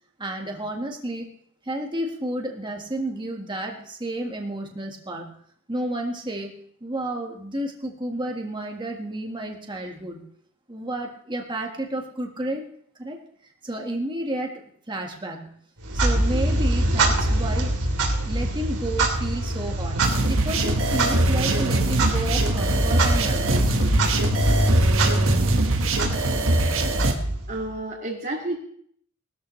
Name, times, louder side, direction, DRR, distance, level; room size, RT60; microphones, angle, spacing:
voice 1, 0.2-1.3 1.6-5.3 5.7-6.5 6.8-10.3 10.7-12.6 13.0-13.2 13.6-15.6 15.9-17.7 18.2-24.1, right 1 dB, 20° right, 1 dB, 1.7 m, -31 dB
Clock, 15.8-27.8, right 1 dB, 90° right, 3.3 m, -24 dB
sound 1, 20.0-27.1, right 2 dB, 65° right, 1.5 m, -23 dB
voice 2, 27.5-28.5, right 2 dB, 40° right, -5 dB, 2.2 m, -30 dB
19.0 x 13.0 x 3.2 m, 0.64 s
head